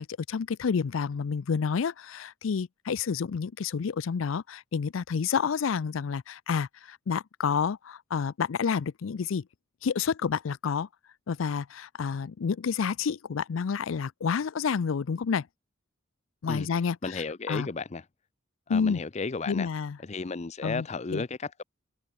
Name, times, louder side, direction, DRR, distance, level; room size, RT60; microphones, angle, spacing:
voice 1, 0.0-9.4 9.8-10.9 11.3-15.5 16.4-17.7 18.7-19.0 19.5-20.0 20.6-20.9 21.1-21.2, left 6 dB, 85° left, 0.5 m, -29 dB
voice 2, 17.0-18.0 18.7-19.7 20.0-21.6, left 4 dB, 35° left, 0.5 m, -33 dB
head